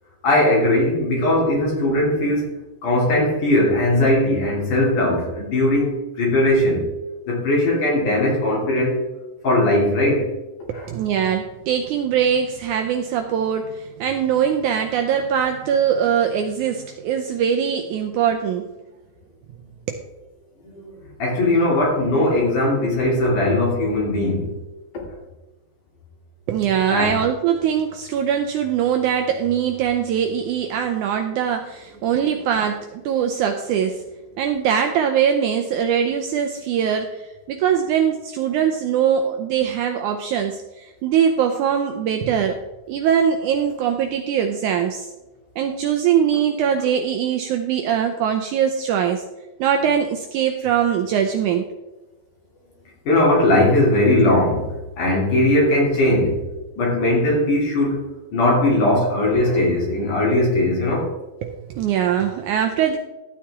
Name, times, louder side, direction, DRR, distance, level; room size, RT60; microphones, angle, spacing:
voice 1, 0.2-2.6 2.8-6.9 7.3-9.1 9.4-10.3 10.7-10.9 20.6-20.9 21.2-24.6 26.9-27.1 53.1-54.7 55.0-56.4 56.8-58.0 58.3-61.1, left 1 dB, 65° left, -3 dB, 4.2 m, -19 dB
voice 2, 10.7-18.7 19.9-20.0 26.5-34.0 34.4-42.6 42.9-45.1 45.6-49.2 49.6-51.7 61.4-63.0, right 8 dB, 75° right, 5 dB, 1.9 m, -22 dB
13.0 x 8.9 x 3.6 m, 1.0 s
omnidirectional pair, 4.0 m